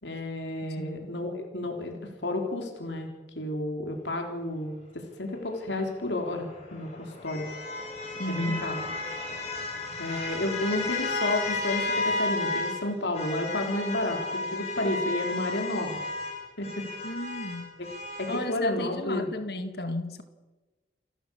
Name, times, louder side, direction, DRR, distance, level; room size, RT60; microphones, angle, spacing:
voice 1, 0.0-3.1 3.4-7.5 8.3-8.9 10.0-16.0 16.6-16.8 17.8-17.9 18.2-19.3, left 1 dB, 85° left, 3 dB, 3.7 m, -31 dB
voice 2, 0.8-1.2 8.2-8.7 17.0-17.7 18.3-20.2, left 1 dB, 60° left, 9 dB, 2.0 m, -34 dB
sound 1, 6.2-12.8 13.1-18.5, left 3 dB, 35° left, 6.6 m, -33 dB
28.5 x 13.5 x 7.1 m, 1.2 s
head